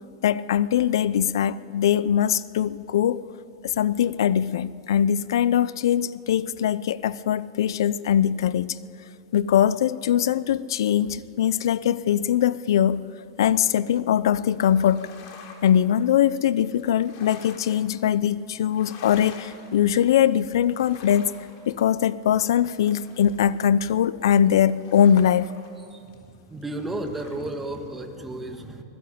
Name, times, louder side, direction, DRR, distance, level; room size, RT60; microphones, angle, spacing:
voice 1, 0.2-3.2 3.6-8.8 9.3-13.0 13.4-15.1 15.6-21.3 21.7-25.5, left 9 dB, 75° left, 18 dB, 0.6 m, -22 dB
sound 1, 14.5-28.2, left 5 dB, 50° left, 4.4 m, -49 dB
voice 2, 26.5-28.8, right 1 dB, 10° right, 4 dB, 2.0 m, -33 dB
26.5 x 20.0 x 8.7 m, 2.7 s
supercardioid pair, 150°, 2 cm